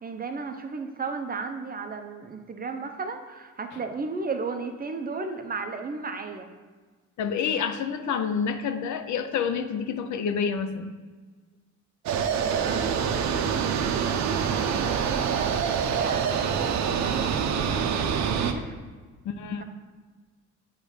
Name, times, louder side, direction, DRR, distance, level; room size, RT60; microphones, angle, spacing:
voice 1, 0.0-6.5 12.2-13.4 14.8-17.2 17.5-18.8, right 4 dB, 30° right, 6 dB, 0.7 m, -34 dB
voice 2, 7.2-10.9 19.3-19.6, left 6 dB, 70° left, 9 dB, 0.6 m, -28 dB
sound 1, 12.1-18.5, right 7 dB, 65° right, 0.6 m, -26 dB
8.0 x 3.2 x 5.0 m, 1.4 s
cardioid pair, 90°, 30 cm